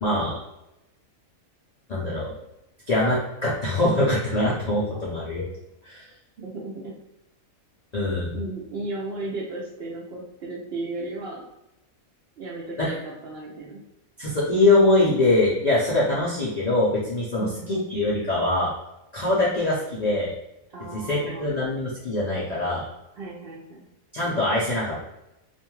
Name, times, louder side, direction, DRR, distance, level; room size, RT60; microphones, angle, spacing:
voice 1, 0.0-0.4 1.9-2.3 2.9-5.4 5.8-6.1 7.9-8.4 12.8-12.9 14.2-18.7 19.1-20.3 20.9-22.8 24.1-25.0, left 2 dB, 85° left, -6 dB, 0.3 m, -23 dB
voice 2, 6.4-6.9 8.3-11.4 12.4-13.8 17.4-17.7 20.7-21.5 23.1-23.9, right 2 dB, 65° right, -4 dB, 0.6 m, -35 dB
2.5 x 2.3 x 2.9 m, 0.89 s
omnidirectional pair, 1.5 m